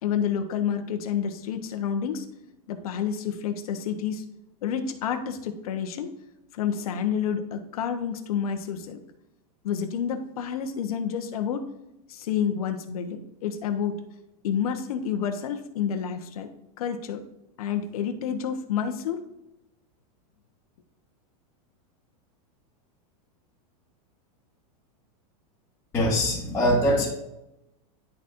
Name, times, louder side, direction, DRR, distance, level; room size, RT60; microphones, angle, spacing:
voice 1, 0.0-2.3 2.7-4.2 4.6-6.1 6.5-9.0 9.6-11.6 12.1-14.0 14.4-16.5 16.8-17.2 17.6-19.2, left 8 dB, 70° left, 6 dB, 1.1 m, -29 dB
voice 2, 25.9-27.1, equal, 10° left, -8 dB, 1.3 m, -22 dB
11.0 x 4.1 x 2.6 m, 0.90 s
supercardioid pair, 175°, 19 cm